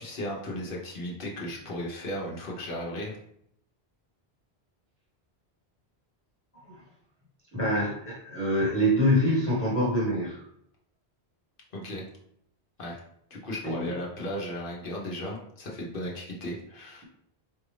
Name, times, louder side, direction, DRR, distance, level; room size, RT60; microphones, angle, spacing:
voice 1, 0.0-3.2 11.7-12.0 12.8-13.0 13.3-17.0, left 1 dB, 55° left, -2 dB, 1.2 m, -35 dB
voice 2, 7.5-10.4 13.6-13.9, equal, 10° left, -7 dB, 1.3 m, -25 dB
4.6 x 2.5 x 3.3 m, 0.71 s
omnidirectional pair, 1.1 m